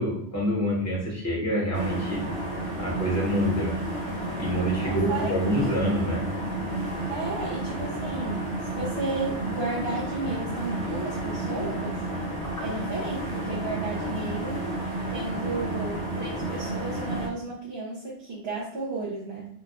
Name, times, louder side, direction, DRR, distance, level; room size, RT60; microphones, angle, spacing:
voice 1, 0.0-2.2 2.8-3.7 4.3-6.3 12.4-12.6, equal, 15° left, -4 dB, 0.8 m, -26 dB
sound 1, 1.7-17.3, right 1 dB, 45° right, 0.9 m, -31 dB
voice 2, 4.8-5.8 7.1-12.0 12.6-14.6 15.1-19.5, right 3 dB, 75° right, -9 dB, 1.0 m, -33 dB
3.0 x 2.2 x 2.4 m, 0.67 s
omnidirectional pair, 1.1 m